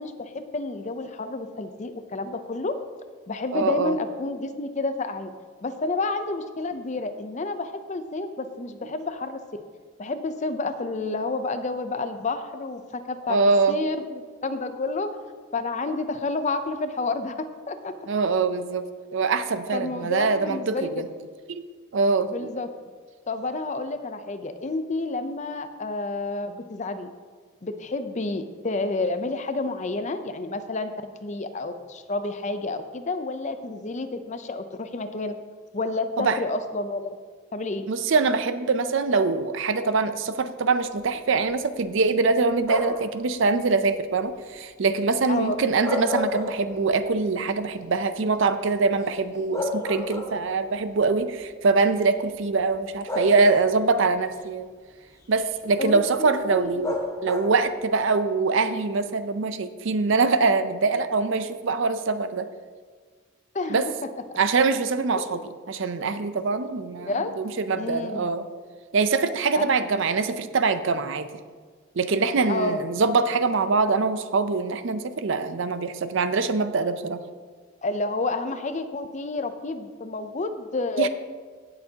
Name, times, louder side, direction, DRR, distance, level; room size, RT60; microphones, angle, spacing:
voice 1, 0.0-2.8 3.3-5.3 5.6-9.4 10.0-13.4 13.7-15.1 15.5-17.9 19.7-20.9 22.3-22.7 23.3-27.1 27.6-30.9 31.2-35.4 35.7-37.1 37.5-37.9 45.3-45.6 55.8-56.8 63.5-63.9 64.3-64.4 65.2-65.4 67.1-67.3 67.8-68.3 69.5-69.7 72.5-72.8 77.8-81.1, left 3 dB, 35° left, 9 dB, 0.5 m, -30 dB
voice 2, 3.5-3.9 13.3-13.8 18.1-21.1 21.5-21.7 21.9-22.5 36.2-36.4 37.9-54.7 55.3-62.5 63.7-63.9 64.4-65.4 65.7-68.5 68.9-71.4 72.0-77.2 81.0-81.1, right 4 dB, 60° right, 11 dB, 0.5 m, -23 dB
sound 1, 42.6-43.2 45.6-47.0 47.4-47.5 49.1-49.2 49.5-50.7 51.7-51.8 53.1-53.8 56.8-57.7, left 2 dB, 15° left, 0.9 m, -30 dB
16.5 x 6.7 x 2.8 m, 1.5 s
head